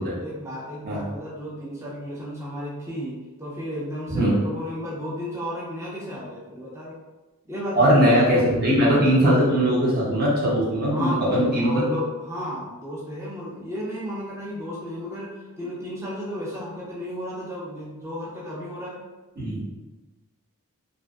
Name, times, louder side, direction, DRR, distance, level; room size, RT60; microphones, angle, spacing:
voice 1, 0.2-6.9 7.5-8.8 10.9-19.0, equal, 15° right, -6 dB, 0.5 m, -33 dB
voice 2, 7.8-11.8 19.4-19.6, equal, 45° right, -6 dB, 0.8 m, -20 dB
2.5 x 2.2 x 2.3 m, 1.1 s
head